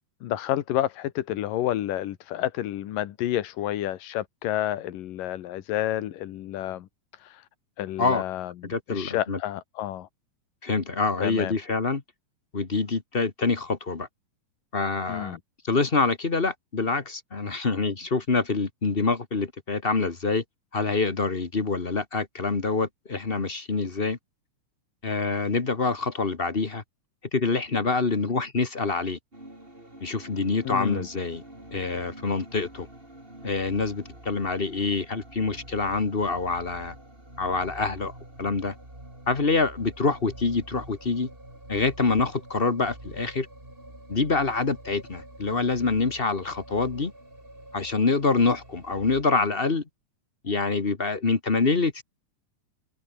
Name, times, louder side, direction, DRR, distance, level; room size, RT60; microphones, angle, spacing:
voice 1, 0.2-6.9 7.1-7.5 7.8-8.5 8.9-10.1 11.2-11.5 15.1-15.4 30.6-31.1, left 13 dB, 90° left, 3.0 m, -30 dB
voice 2, 8.7-9.4 10.6-12.0 12.5-14.1 14.7-15.4 15.6-20.4 20.7-24.2 25.0-26.8 27.3-29.2 30.0-31.4 31.7-32.9 33.4-36.9 37.4-38.1 38.4-38.7 39.3-41.3 41.7-43.5 44.1-47.1 47.7-49.8 50.4-52.0, left 4 dB, 35° left, 0.8 m, -26 dB
sound 1, 29.3-49.2, right 1 dB, 15° right, 7.9 m, -46 dB
omnidirectional pair, 3.8 m